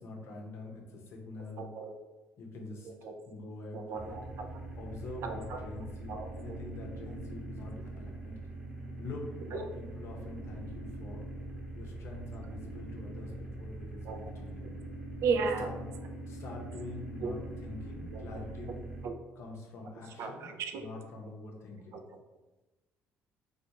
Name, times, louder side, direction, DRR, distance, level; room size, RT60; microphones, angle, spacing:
voice 1, 0.0-1.7 2.4-2.9 3.3-4.2 4.8-8.3 9.0-11.3 11.7-14.7 15.6-15.8 16.3-17.4 17.6-18.7 19.4-20.5 20.8-22.0, left 2 dB, 60° left, 0 dB, 0.6 m, -45 dB
voice 2, 1.6-1.9 2.8-3.1 3.7-4.5 5.2-5.6 6.1-6.6 9.5-9.6 14.0-14.2 15.2-15.7 17.2-17.3 18.1-18.4 18.7-19.2 20.2-20.9 21.9-22.2, right 5 dB, 65° right, 5 dB, 0.3 m, -35 dB
sound 1, 3.9-19.0, right 2 dB, 20° right, 0.8 m, -43 dB
2.4 x 2.3 x 2.8 m, 1.2 s
supercardioid pair, 85°, 5 cm